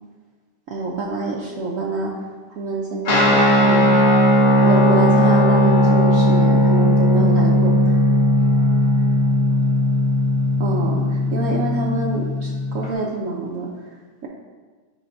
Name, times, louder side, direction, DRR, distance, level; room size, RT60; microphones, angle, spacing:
voice 1, 0.7-2.1 2.5-4.0 4.6-7.9 10.6-13.7, right 3 dB, 75° right, -2 dB, 0.7 m, -26 dB
Guitar, 3.0-12.9, equal, 50° left, 1.5 m, -17 dB
10.0 x 4.2 x 2.6 m, 1.4 s
omnidirectional pair, 2.0 m